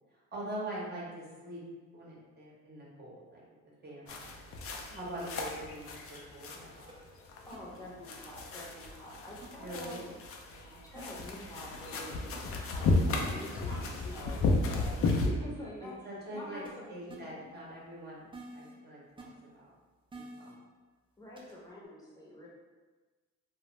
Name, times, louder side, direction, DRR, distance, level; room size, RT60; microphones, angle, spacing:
voice 1, 0.1-1.6 1.9-3.4 3.8-4.4 4.9-6.9 9.6-10.1 13.1-14.0 15.8-16.6 16.9-18.3 18.5-19.7 20.1-20.6, right 1 dB, 35° right, -5 dB, 0.8 m, -44 dB
sound 1, 4.1-15.3, left 3 dB, 50° left, 0.4 m, -34 dB
voice 2, 4.9-5.3 7.5-10.1 10.5-14.4 14.7-15.9 16.3-17.3 21.2-22.5, left 1 dB, 10° left, -5 dB, 0.7 m, -46 dB
sound 2, 5.3-5.5 6.9-7.0 7.5-7.6 8.6-8.7 9.4-9.5 11.0-11.1 12.3-12.4 13.7-13.8 14.6-14.7 14.9-15.0 16.6-16.7 17.1-17.2 18.3-18.7 19.2-19.3 20.1-20.5 21.4-21.5, right 2 dB, 15° right, 0.4 m, -48 dB
2.3 x 2.1 x 3.0 m, 1.3 s
cardioid pair, 90°, 30 cm